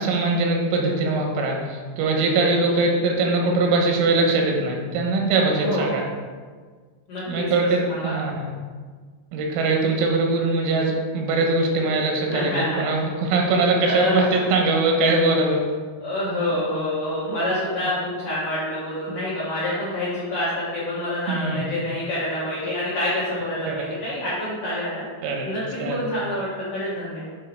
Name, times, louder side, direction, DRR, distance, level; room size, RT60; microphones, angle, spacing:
voice 1, 0.0-6.0 7.3-8.5 9.3-15.6 21.3-21.6 23.7-23.8 25.2-25.5 25.8-26.0, right 3 dB, 90° right, 1 dB, 3.8 m, -22 dB
voice 2, 2.6-2.9 5.6-6.0 7.1-8.1 12.3-13.0 13.8-14.5 16.0-25.0 25.4-27.3, left 1 dB, 70° left, -10 dB, 2.0 m, -27 dB
9.2 x 3.7 x 4.5 m, 1.5 s
omnidirectional pair, 5.9 m